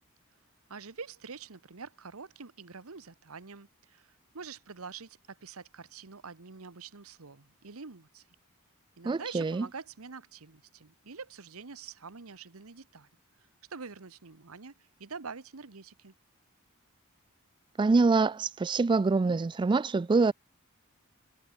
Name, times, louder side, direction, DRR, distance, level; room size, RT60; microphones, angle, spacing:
voice 1, 0.7-8.2 9.0-13.1 13.7-16.1, right 5 dB, 90° right, 1.2 m, -46 dB
voice 2, 9.1-9.7 17.8-20.3, right 3 dB, 20° right, 0.3 m, -25 dB
head